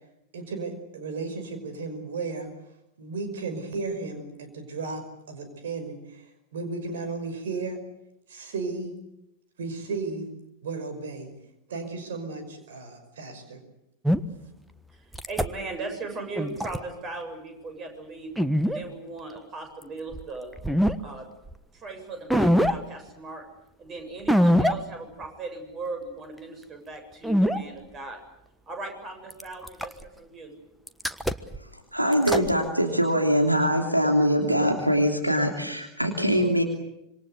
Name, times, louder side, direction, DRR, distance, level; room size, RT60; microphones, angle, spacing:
voice 1, 0.3-2.5 3.0-7.8 8.3-9.0 9.6-10.3 10.6-11.3 11.7-13.6, right 3 dB, 60° right, 8 dB, 5.5 m, -34 dB
sound 1, 14.1-14.2 15.1-15.5 16.4-16.8 18.4-18.8 20.1-20.2 20.6-21.0 21.5-21.6 22.3-22.8 24.3-24.7 25.2-25.3 27.2-27.6 29.3-30.0 30.9-31.6 32.1-32.5, equal, ahead, 1.3 m, -22 dB
voice 2, 14.9-18.3 18.6-20.5 21.0-21.3 21.7-23.5 23.8-28.2 28.7-30.5, right 3 dB, 25° right, 6 dB, 7.7 m, -38 dB
voice 3, 31.6-36.6, equal, 85° right, 3 dB, 3.0 m, -23 dB
26.5 x 25.0 x 8.1 m, 0.85 s
figure-of-eight pair, 90°, 0 cm